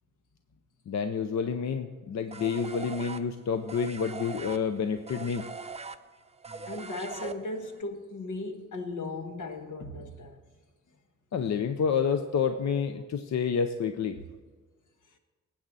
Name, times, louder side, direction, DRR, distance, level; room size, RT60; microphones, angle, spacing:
voice 1, 0.9-5.5 11.3-14.2, left 6 dB, 65° left, 0.6 m, -29 dB
sound 1, 2.3-7.8, right 4 dB, 20° right, 0.5 m, -41 dB
voice 2, 6.7-10.4, left 2 dB, 85° left, 1.5 m, -37 dB
19.0 x 8.7 x 4.1 m
wide cardioid pair, 95°, 30 cm